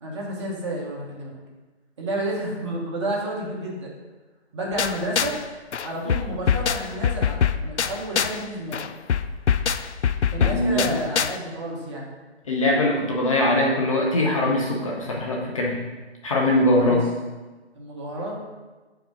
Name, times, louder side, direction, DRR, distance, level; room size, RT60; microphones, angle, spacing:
voice 1, 0.0-1.4 2.0-3.9 4.5-5.4 5.8-8.9 10.3-12.1 16.8-17.0 17.7-18.4, right 1 dB, 25° right, -3 dB, 1.1 m, -30 dB
sound 1, 4.8-5.4 5.7-8.4 8.7-11.4, left 7 dB, 90° left, 0.5 m, -24 dB
voice 2, 10.4-10.9 12.5-15.8 16.2-17.0, left 1 dB, 30° left, -2 dB, 0.9 m, -22 dB
5.2 x 4.4 x 6.1 m, 1.2 s
figure-of-eight pair, 155°, 33 cm